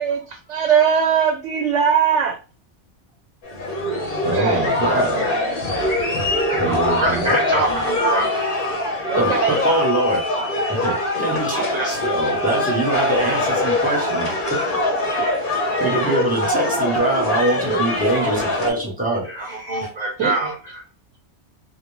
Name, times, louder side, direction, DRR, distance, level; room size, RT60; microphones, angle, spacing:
voice 1, 0.0-2.4 4.3-4.7 9.1-9.6 20.2-20.5, right 7 dB, 80° right, 2 dB, 0.9 m, -20 dB
sound 1, 3.4-18.7, left 2 dB, 50° left, 0.8 m, -23 dB
voice 2, 4.2-5.4 6.5-7.4 9.2-14.8 15.8-19.9, right 2 dB, 10° right, -2 dB, 0.7 m, -24 dB
voice 3, 6.5-8.3 11.5-12.1 19.2-20.8, right 2 dB, 50° right, -2 dB, 0.6 m, -25 dB
2.2 x 2.2 x 3.1 m, 0.34 s
omnidirectional pair, 1.2 m